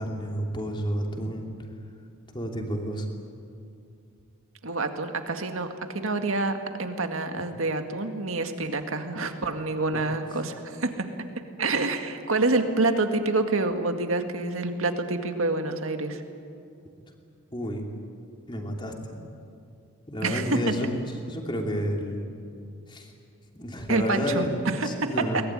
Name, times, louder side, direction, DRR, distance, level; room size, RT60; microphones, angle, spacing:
voice 1, 0.0-1.4 2.3-3.1 9.9-10.0 17.5-17.8 18.5-19.2 20.1-20.9 21.3-22.2 22.9-23.1 23.5-25.4, equal, 20° left, 2 dB, 2.9 m, -30 dB
voice 2, 4.6-11.1 11.6-16.2 20.2-20.6 23.9-25.2, right 2 dB, 65° right, 6 dB, 2.0 m, -27 dB
22.5 x 20.0 x 9.9 m, 2.5 s
head